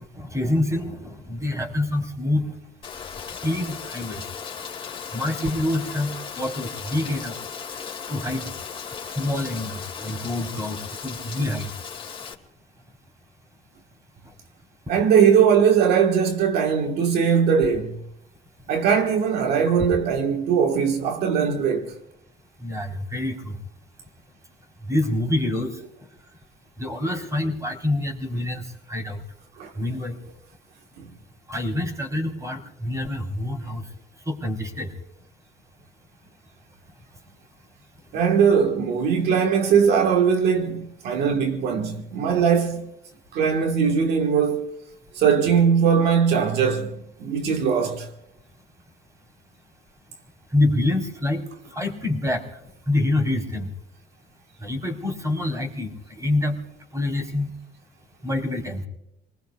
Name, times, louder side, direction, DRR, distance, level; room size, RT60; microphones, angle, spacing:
voice 1, 0.2-2.5 3.4-4.2 5.1-7.3 8.1-8.4 9.2-10.8 11.0-11.7 22.6-23.6 24.9-25.8 26.8-29.2 29.8-30.2 31.5-33.9 34.3-34.9 50.5-51.4 51.7-52.4 52.9-53.7 54.6-56.6 56.9-57.5 58.2-58.8, left 1 dB, 20° right, 4.0 m, -26 dB
Rain, 2.8-12.3, left 6 dB, 30° left, 2.3 m, -36 dB
voice 2, 14.9-18.0 18.7-21.9 29.6-29.7 31.0-31.1 38.1-42.9 43.3-44.7 45.1-48.1, right 7 dB, 75° right, 1.5 m, -20 dB
28.5 x 20.0 x 2.4 m
cardioid pair, 110°, 17 cm